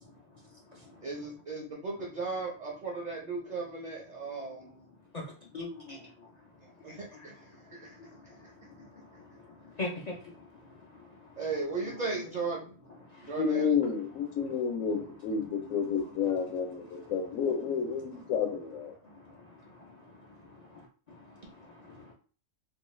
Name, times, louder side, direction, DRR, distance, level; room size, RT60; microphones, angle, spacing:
voice 1, 1.0-4.7 6.8-7.3 7.8-7.9 11.4-12.7 13.2-13.7, right 3 dB, 55° right, -1 dB, 0.5 m, -36 dB
voice 2, 6.9-7.3 7.7-11.4 13.1-13.3 15.7-15.9 19.1-20.8 21.2-22.1, left 2 dB, 60° left, -3 dB, 0.4 m, -44 dB
voice 3, 13.4-18.9, left 6 dB, 80° left, 4 dB, 1.0 m, -30 dB
2.6 x 2.3 x 3.1 m, 0.40 s
omnidirectional pair, 1.4 m